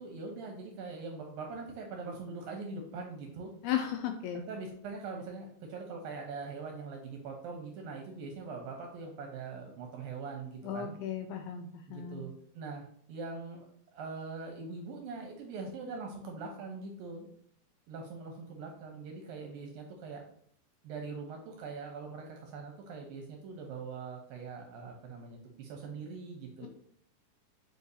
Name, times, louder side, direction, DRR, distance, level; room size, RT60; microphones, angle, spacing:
voice 1, 0.0-3.5 4.3-10.9 11.9-12.8 13.1-17.3 17.9-20.3 20.8-26.7, right 4 dB, 75° right, 2 dB, 2.2 m, -42 dB
voice 2, 3.6-4.4 10.6-12.3, left 9 dB, 85° left, 5 dB, 2.3 m, -35 dB
8.2 x 4.7 x 2.8 m, 0.63 s
omnidirectional pair, 4.8 m